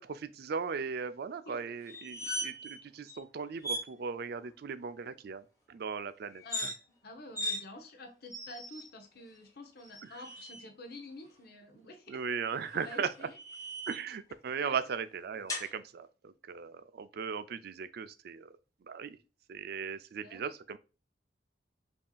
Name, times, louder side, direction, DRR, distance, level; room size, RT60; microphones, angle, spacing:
voice 1, 0.0-6.7 12.1-13.1 13.9-18.5 18.9-19.2 19.5-20.8, right 6 dB, 55° right, 0.4 m, -38 dB
voice 2, 1.4-1.8 6.4-6.7 7.0-12.2 12.5-13.4 14.6-14.8 20.2-20.5, left 2 dB, 55° left, 0.8 m, -49 dB
sound 1, 1.9-2.8 3.1-3.2 3.6-3.9 6.4-6.7 7.3-7.6 8.3-8.9 9.8-10.6 12.5-14.1 15.5-15.7, equal, 20° left, 1.4 m, -38 dB
5.4 x 2.8 x 2.2 m
head